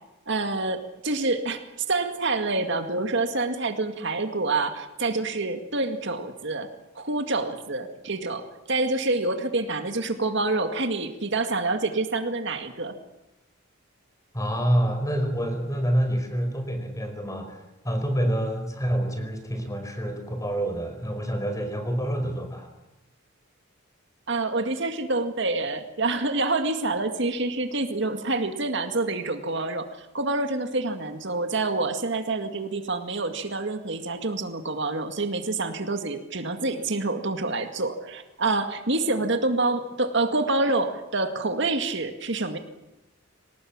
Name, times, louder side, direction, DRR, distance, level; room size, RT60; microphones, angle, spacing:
voice 1, 0.3-1.6 1.9-6.7 7.0-13.0 24.3-42.6, right 2 dB, 55° right, 7 dB, 2.0 m, -27 dB
voice 2, 14.3-22.7, equal, 15° left, 6 dB, 4.9 m, -27 dB
25.5 x 19.0 x 8.8 m, 0.93 s
head